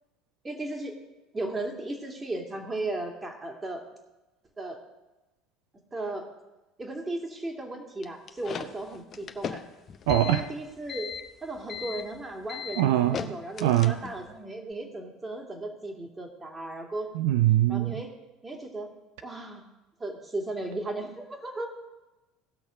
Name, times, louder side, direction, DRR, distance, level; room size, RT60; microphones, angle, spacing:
voice 1, 0.4-1.0 1.3-3.8 4.6-4.8 5.9-6.3 6.8-9.6 10.1-11.1 11.4-17.1 17.7-18.1 18.4-18.9 19.2-19.7 20.0-21.7, right 2 dB, 20° right, 2 dB, 2.3 m, -36 dB
sound 1, 8.0-14.3, left 7 dB, 40° left, 0.8 m, -38 dB
voice 2, 10.1-10.4 12.8-13.2 13.6-13.9 17.1-18.0, right 13 dB, 65° right, 9 dB, 0.4 m, -22 dB
17.5 x 6.3 x 5.1 m, 1.1 s
figure-of-eight pair, 65°, 0 cm